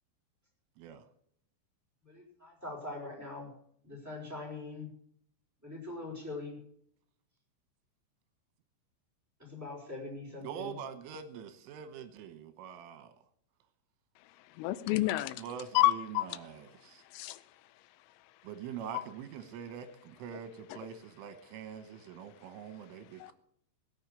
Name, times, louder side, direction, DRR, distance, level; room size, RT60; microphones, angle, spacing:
voice 1, 2.0-3.5 3.8-4.9 5.6-6.6 9.4-10.8, left 2 dB, 5° right, -2 dB, 4.8 m, -42 dB
voice 2, 10.4-13.1 15.4-17.0 18.4-23.3, right 8 dB, 80° right, 10 dB, 3.6 m, -44 dB
voice 3, 14.5-15.4 15.7-16.3 17.1-17.4 18.9-19.0 20.7-20.8 23.2-23.3, left 17 dB, 85° left, 14 dB, 3.4 m, -29 dB
18.0 x 6.9 x 8.1 m, 0.68 s
omnidirectional pair, 5.8 m